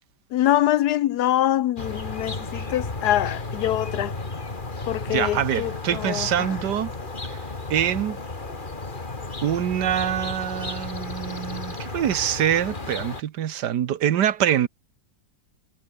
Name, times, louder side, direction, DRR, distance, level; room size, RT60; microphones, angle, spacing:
voice 1, 0.3-4.1 4.9-6.5, left 13 dB, 70° left, 1.2 m, -24 dB
sound 1, 1.8-13.2, left 3 dB, 30° left, 2.5 m, -33 dB
voice 2, 5.1-6.9 7.3-7.4 7.7-8.2 9.4-14.7, right 10 dB, 75° right, 1.6 m, -24 dB
omnidirectional pair, 1.9 m